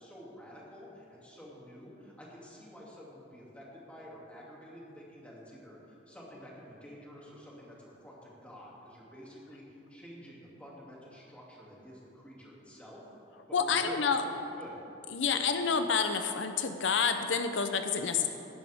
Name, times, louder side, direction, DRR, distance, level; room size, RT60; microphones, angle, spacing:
voice 1, 0.0-5.8 6.1-13.0 13.5-14.9 15.3-15.5, equal, 5° left, -5 dB, 2.6 m, -49 dB
voice 2, 13.5-14.2 15.1-18.3, left 6 dB, 90° left, 7 dB, 0.7 m, -28 dB
16.5 x 11.5 x 3.6 m, 2.9 s
head